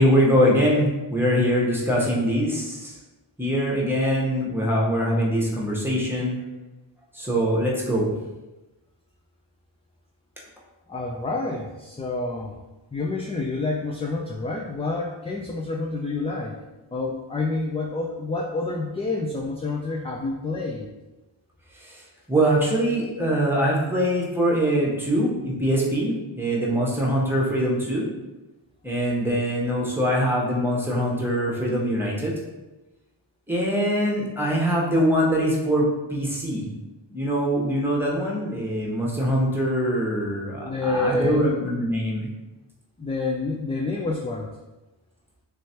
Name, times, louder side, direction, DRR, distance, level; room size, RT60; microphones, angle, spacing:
voice 1, 0.0-2.9 3.4-6.4 7.1-8.1 21.8-22.0 22.3-28.1 28.8-32.3 33.5-36.7 37.1-42.3, equal, 5° right, -4 dB, 1.0 m, -23 dB
voice 2, 10.9-12.6 12.9-16.6 16.9-20.9 40.6-41.5 43.0-44.5, left 3 dB, 15° left, -1 dB, 0.3 m, -28 dB
3.1 x 3.1 x 2.8 m, 1.1 s
cardioid pair, 45°, 49 cm